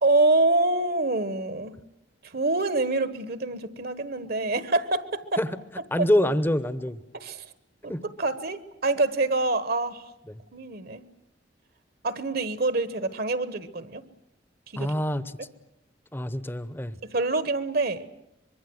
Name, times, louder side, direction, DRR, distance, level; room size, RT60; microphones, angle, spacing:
voice 1, 0.0-1.8 2.2-5.4 6.0-6.1 7.1-7.5 7.8-10.0 10.5-11.1 12.0-14.0 14.7-14.9 17.0-18.1, right 2 dB, 55° right, 13 dB, 1.2 m, -26 dB
voice 2, 5.9-7.0 7.9-8.0 10.3-10.4 14.8-15.2 16.1-17.0, left 1 dB, 10° left, 14 dB, 0.9 m, -25 dB
24.5 x 22.5 x 7.9 m, 0.84 s
head